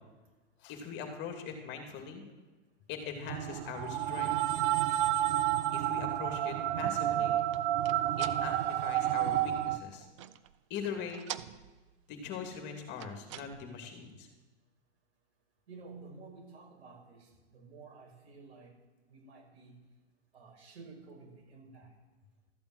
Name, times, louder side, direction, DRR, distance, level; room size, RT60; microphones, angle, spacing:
voice 1, 0.6-2.2 2.9-4.3 5.7-7.4 8.2-10.1 10.7-11.2 12.1-14.3, left 6 dB, 30° left, 4 dB, 2.6 m, -41 dB
sound 1, 3.3-9.8, right 13 dB, 45° right, 0.8 m, -30 dB
sound 2, 6.9-10.6 10.9-12.1 12.8-13.9, right 13 dB, 25° right, 0.4 m, -47 dB
voice 2, 15.7-18.7 19.1-19.8 20.3-21.9, right 4 dB, 60° right, 0 dB, 6.1 m, -52 dB
13.5 x 8.7 x 7.7 m, 1.2 s
hypercardioid pair, 130°, 35 cm